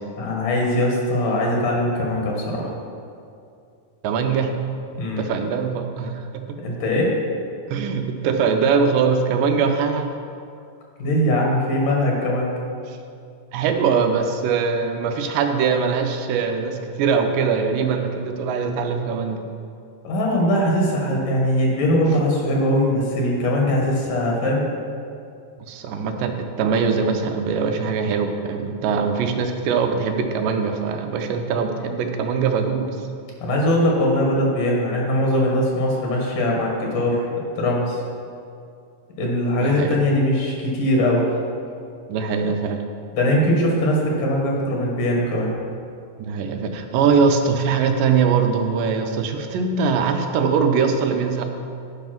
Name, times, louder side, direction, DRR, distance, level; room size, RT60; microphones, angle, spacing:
voice 1, 0.2-2.7 4.9-5.2 6.6-7.2 11.0-12.5 20.0-24.6 33.4-37.3 37.6-38.0 39.2-41.3 43.1-45.6, left 1 dB, 75° left, -1 dB, 3.0 m, -21 dB
voice 2, 4.0-4.6 5.2-6.6 7.7-10.1 12.9-13.0 13.5-19.4 25.6-33.0 39.6-40.0 42.1-42.8 46.2-51.4, right 5 dB, 90° right, 5 dB, 2.4 m, -22 dB
10.0 x 5.4 x 5.9 m, 2.4 s
omnidirectional pair, 3.8 m